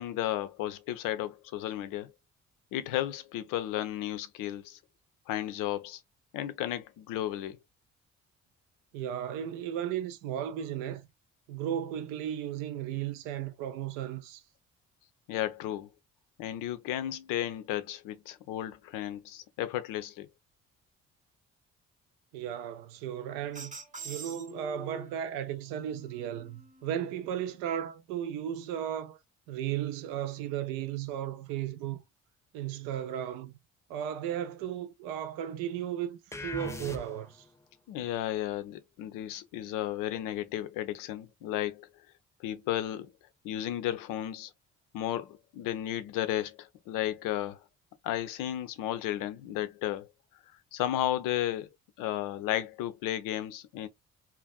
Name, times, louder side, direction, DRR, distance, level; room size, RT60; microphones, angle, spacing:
voice 1, 0.0-2.1 2.7-4.8 5.3-6.0 6.3-7.6 15.3-15.9 16.4-20.3 37.9-41.9 42.4-43.1 43.4-44.5 44.9-47.6 48.0-50.1 50.7-51.7 52.0-53.9, left 12 dB, 55° left, 0.5 m, -33 dB
voice 2, 8.9-11.1 11.5-14.4 22.3-23.8 24.0-29.2 29.5-32.0 32.5-33.5 33.9-37.4, right 10 dB, 65° right, 0.5 m, -35 dB
sound 1, 23.5-25.3 25.9-27.0, right 3 dB, 20° right, 0.8 m, -45 dB
sound 2, 36.3-37.5, left 2 dB, 10° left, 0.3 m, -39 dB
2.4 x 2.2 x 2.3 m
figure-of-eight pair, 45°, 38 cm